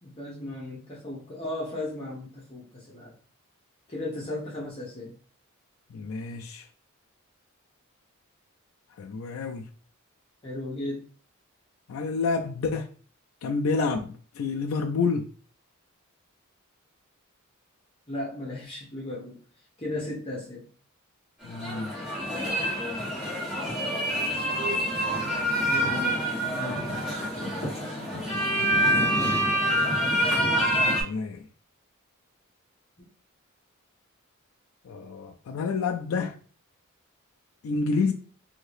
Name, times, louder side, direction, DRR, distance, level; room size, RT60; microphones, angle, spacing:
voice 1, 0.0-3.1 3.9-5.1 10.4-11.1 18.1-19.4 19.8-20.6 25.6-26.2 26.5-26.8, left 2 dB, 30° left, 0.8 m, -35 dB
voice 2, 5.9-6.7 8.9-9.7 11.9-12.9 13.4-15.3 21.4-21.9 24.6-24.9 31.0-31.5 34.8-36.4 37.6-38.1, left 4 dB, 75° left, 0.3 m, -29 dB
sound 1, 21.4-31.0, equal, 5° right, 1.3 m, -26 dB
2.8 x 2.7 x 3.2 m
head